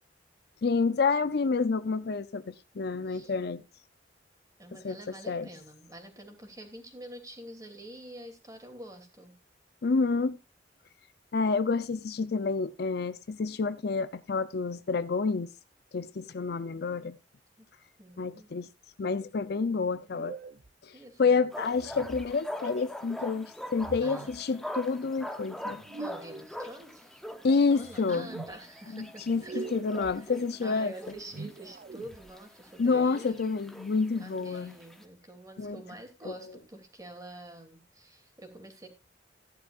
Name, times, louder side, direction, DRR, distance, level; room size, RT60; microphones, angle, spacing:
voice 1, 0.6-3.6 4.8-5.0 5.3-5.5 9.8-10.4 11.3-15.5 15.9-17.2 18.2-18.7 19.0-20.4 20.8-20.9 21.2-25.8 27.4-28.3 28.9-30.9 32.8-34.7 35.6-35.8 36.2-36.4, left 4 dB, 60° left, 0.5 m, -28 dB
voice 2, 4.6-9.3 17.6-17.7 18.0-18.5 20.9-21.5 24.0-24.3 25.9-27.3 27.7-29.6 30.0-30.3 30.6-33.6 34.1-38.9, right 1 dB, 20° right, 2.7 m, -47 dB
sound 1, 20.1-20.7 21.7-22.4 23.8-24.4 25.8-26.5 27.8-28.5 29.3-30.2 31.1-32.3, right 3 dB, 45° right, 0.5 m, -43 dB
sound 2, 21.5-35.0, equal, ahead, 1.0 m, -43 dB
15.5 x 11.0 x 2.4 m
head